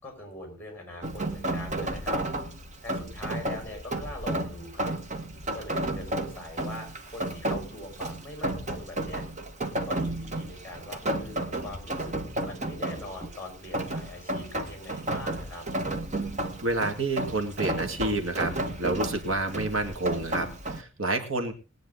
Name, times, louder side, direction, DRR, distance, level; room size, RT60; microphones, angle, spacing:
voice 1, 0.0-2.2 2.8-4.9 5.5-9.2 9.8-15.6, left 1 dB, 10° left, 3 dB, 6.4 m, -42 dB
Rain, 1.0-20.8, right 1 dB, 35° right, 1.5 m, -32 dB
voice 2, 16.6-18.5 18.8-21.5, right 2 dB, 75° right, 6 dB, 2.2 m, -29 dB
20.5 x 9.2 x 3.9 m, 0.32 s
head